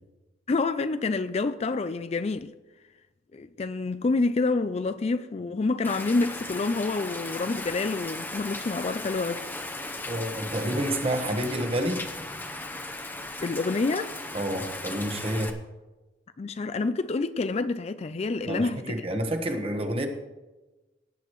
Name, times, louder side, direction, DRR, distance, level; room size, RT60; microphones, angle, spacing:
voice 1, 0.5-2.5 3.3-9.4 13.4-14.1 16.4-19.1, left 3 dB, 35° left, 0.4 m, -28 dB
Rain, 5.8-15.5, left 2 dB, 10° left, 0.8 m, -37 dB
voice 2, 10.1-12.0 14.3-15.5 18.5-20.1, right 1 dB, 30° right, 1.2 m, -29 dB
18.0 x 9.3 x 3.1 m
head